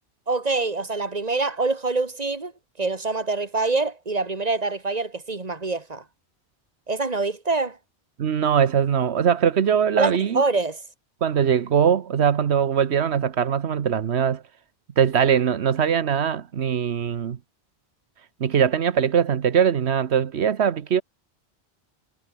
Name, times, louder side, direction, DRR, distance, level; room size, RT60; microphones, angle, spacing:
voice 1, 0.3-2.5 2.8-6.0 6.9-7.8 10.0-10.8, right 3 dB, 40° right, 2.2 m, -25 dB
voice 2, 8.2-10.4 11.2-14.4 15.0-17.4 18.4-21.0, right 8 dB, 80° right, 1.3 m, -21 dB
omnidirectional pair, 1.1 m